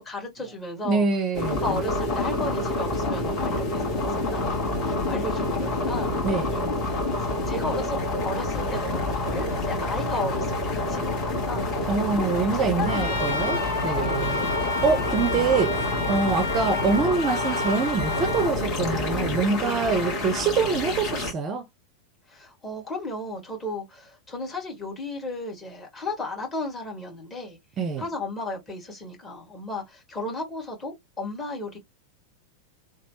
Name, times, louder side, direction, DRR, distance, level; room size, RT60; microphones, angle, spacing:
voice 1, 0.0-1.1 1.5-6.1 6.6-6.7 7.2-8.0 8.2-14.3 19.6-19.9 22.3-27.6 28.0-31.8, left 2 dB, 20° left, 1.7 m, -34 dB
voice 2, 0.8-1.7 6.2-6.5 11.9-21.7 27.8-28.1, right 4 dB, 30° right, 0.5 m, -25 dB
sound 1, 1.3-21.3, left 2 dB, 35° left, 1.6 m, -28 dB
Trumpet, 12.8-18.5, left 2 dB, 70° left, 0.8 m, -31 dB
3.1 x 2.3 x 3.0 m
figure-of-eight pair, 90°, 0 cm